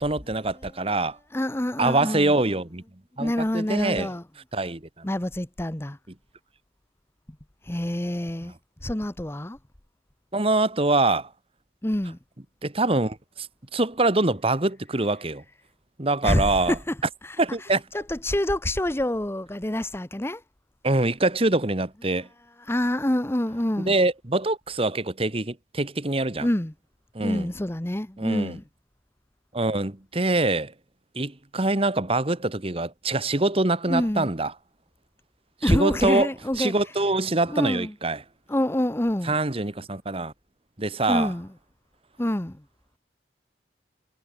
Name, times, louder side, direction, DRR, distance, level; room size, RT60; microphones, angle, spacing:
voice 1, 0.0-1.2 1.8-2.8 3.2-4.1 4.5-5.1 10.3-11.3 12.6-13.5 13.7-15.4 16.0-16.8 17.4-17.8 20.8-22.3 23.9-26.5 27.2-27.5 28.2-28.6 29.5-30.7 31.2-34.5 35.6-36.3 36.6-38.2 39.3-40.3 40.8-41.3, right 2 dB, 35° right, 1.7 m, -24 dB
voice 2, 1.3-2.3 3.2-4.2 5.0-6.0 7.6-8.5 8.8-9.6 11.8-12.2 16.2-17.0 17.2-17.4 17.9-20.4 22.6-24.0 26.4-26.7 27.2-28.6 33.9-34.3 35.6-36.7 37.5-37.9 38.5-39.4 41.1-41.5 42.2-42.6, left 1 dB, 15° left, 0.9 m, -26 dB
head